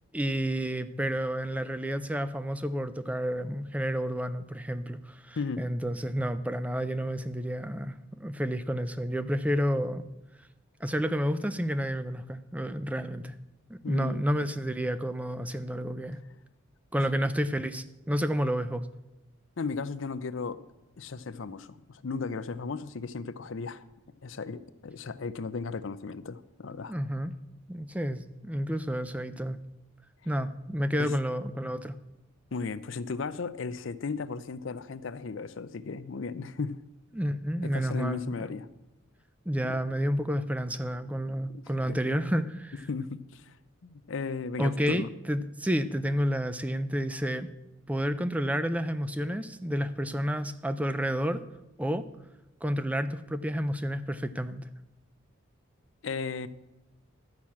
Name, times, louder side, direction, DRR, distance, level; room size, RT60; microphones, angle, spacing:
voice 1, 0.1-10.0 10.8-13.3 13.7-16.2 16.9-18.9 26.9-27.3 27.7-29.6 30.3-32.0 37.1-38.5 39.5-42.9 44.6-47.5 47.9-51.4 51.8-52.1 52.6-54.7, equal, 5° right, 12 dB, 0.4 m, -30 dB
voice 2, 13.8-14.3 17.0-17.3 19.6-20.6 21.0-23.8 24.2-26.9 31.0-31.1 32.5-36.8 37.6-38.7 39.6-39.8 41.5-42.0 42.9-43.6 43.8-45.1 56.0-56.5, left 4 dB, 65° left, 14 dB, 0.6 m, -35 dB
12.0 x 6.0 x 8.5 m, 0.99 s
head